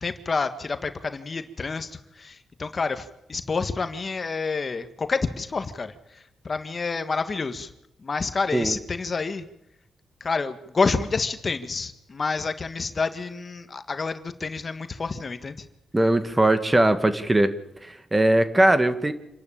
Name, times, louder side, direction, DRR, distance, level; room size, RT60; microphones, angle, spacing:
voice 1, 0.0-7.7 8.0-9.5 10.2-15.6, left 4 dB, 45° left, 9 dB, 1.6 m, -28 dB
voice 2, 15.9-17.5 17.8-19.1, right 1 dB, 20° right, 10 dB, 1.9 m, -20 dB
27.0 x 12.0 x 8.8 m, 0.86 s
supercardioid pair, 55°, 0 cm